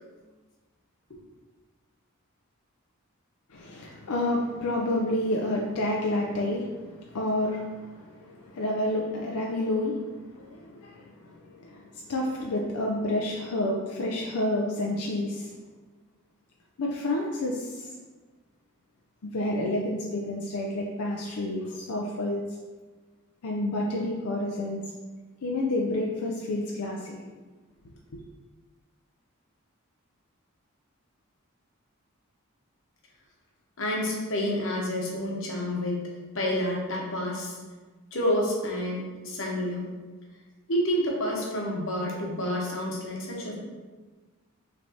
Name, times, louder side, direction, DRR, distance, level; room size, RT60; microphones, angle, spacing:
voice 1, 3.5-15.5 16.8-17.9 19.2-22.4 23.4-24.8 25.4-27.1 28.1-28.2, left 1 dB, 90° left, -1 dB, 0.5 m, -29 dB
voice 2, 33.8-36.1 36.3-37.6 38.1-39.9 40.7-43.6, left 1 dB, 60° left, -2 dB, 1.0 m, -29 dB
5.8 x 3.3 x 2.8 m, 1.3 s
head